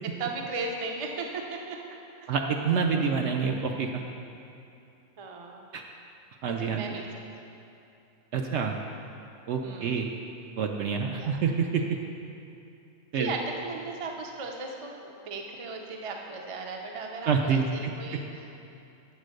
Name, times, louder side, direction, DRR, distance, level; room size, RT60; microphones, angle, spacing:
voice 1, 0.2-2.3 3.0-3.1 5.2-5.7 6.5-7.0 9.6-10.0 11.2-11.4 13.1-18.5, right 3 dB, 40° right, 1 dB, 0.5 m, -37 dB
voice 2, 2.3-3.9 5.7-5.8 6.4-6.9 8.3-8.7 9.5-10.1 10.6-11.8 13.1-13.3 17.3-17.7, right 6 dB, 65° right, 2 dB, 0.8 m, -27 dB
8.2 x 4.4 x 6.4 m, 2.7 s
omnidirectional pair, 1.4 m